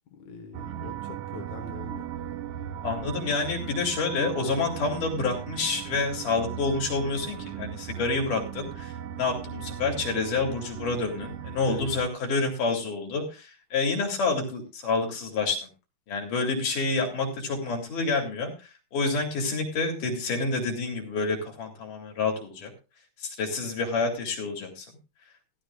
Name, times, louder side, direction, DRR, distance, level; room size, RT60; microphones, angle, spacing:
voice 1, 0.1-2.1 11.6-11.9, left 5 dB, 70° left, 3 dB, 2.6 m, -43 dB
sound 1, 0.5-12.1, right 10 dB, 85° right, 1.3 m, -37 dB
voice 2, 2.8-15.7 16.1-18.5 18.9-22.7 23.2-24.9, left 3 dB, 85° left, 1 dB, 4.3 m, -28 dB
15.0 x 14.0 x 2.4 m, 0.30 s
omnidirectional pair, 3.5 m